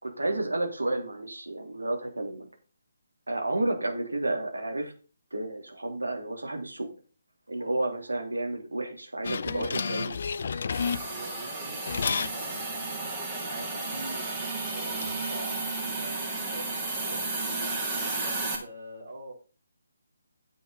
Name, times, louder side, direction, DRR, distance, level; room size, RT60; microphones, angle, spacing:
voice 1, 0.0-2.4 3.3-4.9 5.3-6.9 7.5-10.1, right 2 dB, 75° right, 3 dB, 3.3 m, -31 dB
sound 1, 9.2-11.4 11.9-12.3 14.5-15.1, left 5 dB, 50° left, 0.6 m, -31 dB
Hiss, 10.7-18.6, right 3 dB, 15° right, 2.8 m, -33 dB
voice 2, 11.0-17.2 18.2-19.3, right 1 dB, 45° right, -1 dB, 4.8 m, -45 dB
10.0 x 7.7 x 4.1 m, 0.36 s
figure-of-eight pair, 145°, 0 cm